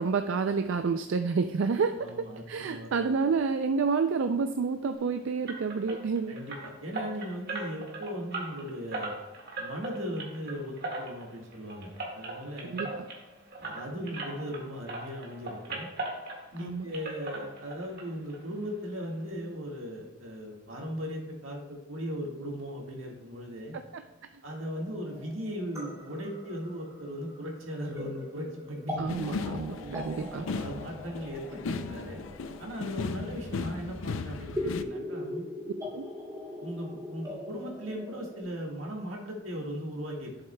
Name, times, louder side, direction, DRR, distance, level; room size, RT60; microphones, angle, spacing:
voice 1, 0.0-6.3 12.7-13.0 16.6-16.8 29.0-30.5 35.9-36.0, right 5 dB, 70° right, 8 dB, 0.4 m, -29 dB
voice 2, 2.0-3.2 6.3-9.1 9.5-12.9 13.6-15.9 16.5-23.8 24.4-29.0 29.8-32.2 32.6-35.5 36.6-40.4, equal, 90° right, -1 dB, 1.7 m, -38 dB
sound 1, 5.5-14.6 14.9-16.7 16.9-18.0 18.3-18.4 18.9-19.0 19.3-19.4, right 2 dB, 50° right, 1.7 m, -38 dB
sound 2, 24.6-38.4, left 1 dB, 15° right, 2.1 m, -41 dB
sound 3, 29.1-34.8, left 4 dB, 80° left, 0.4 m, -36 dB
11.0 x 7.3 x 2.2 m, 1.1 s
head